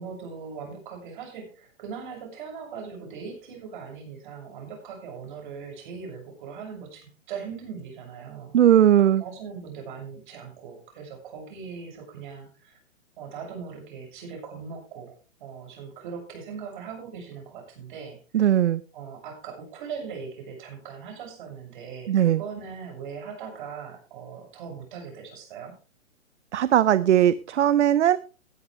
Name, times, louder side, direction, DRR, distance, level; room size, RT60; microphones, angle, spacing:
voice 1, 0.0-8.5 9.2-12.8 13.2-15.1 15.4-18.5 18.9-25.8, right 6 dB, 40° right, 2 dB, 6.9 m, -40 dB
voice 2, 8.5-9.2 18.3-18.8 22.1-22.4 26.5-28.2, right 11 dB, 60° right, 17 dB, 0.7 m, -19 dB
17.5 x 10.5 x 3.3 m, 0.35 s
hypercardioid pair, 160°, 39 cm